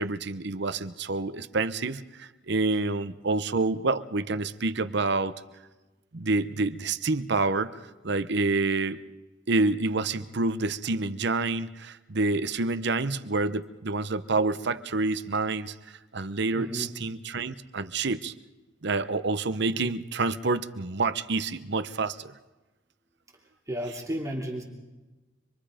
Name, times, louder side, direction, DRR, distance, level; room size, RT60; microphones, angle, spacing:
voice 1, 0.0-5.4 6.1-7.8 8.0-9.0 9.5-18.3 18.8-22.3, right 3 dB, 65° right, 12 dB, 0.9 m, -28 dB
voice 2, 16.5-16.9 23.7-24.6, equal, 15° right, 0 dB, 2.8 m, -33 dB
26.0 x 23.0 x 5.1 m, 1.1 s
head